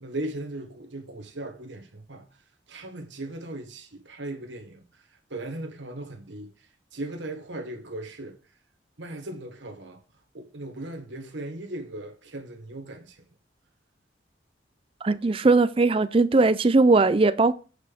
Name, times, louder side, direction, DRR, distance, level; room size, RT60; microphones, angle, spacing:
voice 1, 0.0-2.2 2.7-6.5 6.9-8.4 9.0-10.0 10.3-13.3, right 1 dB, 75° right, 1.4 m, -38 dB
voice 2, 15.0-17.5, right 3 dB, 30° right, 0.4 m, -19 dB
8.0 x 4.9 x 5.1 m
head